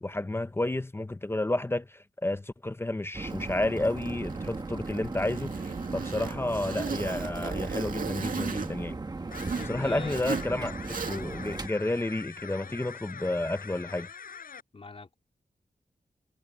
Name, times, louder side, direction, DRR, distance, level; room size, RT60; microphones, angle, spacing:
voice 1, 0.0-9.0 9.6-10.8 11.1-14.1, left 2 dB, 15° left, 0.7 m, -31 dB
sound 1, 3.1-11.7, right 3 dB, 30° right, 1.4 m, -37 dB
Zipper (clothing), 3.2-9.7 10.1-10.5 10.8-11.4, right 5 dB, 70° right, 2.1 m, -37 dB
sound 2, 9.3-14.6, left 6 dB, 80° left, 5.8 m, -44 dB
voice 2, 9.6-10.2 12.6-12.8 14.7-15.2, left 3 dB, 45° left, 3.9 m, -43 dB
wide cardioid pair, 125°, 14 cm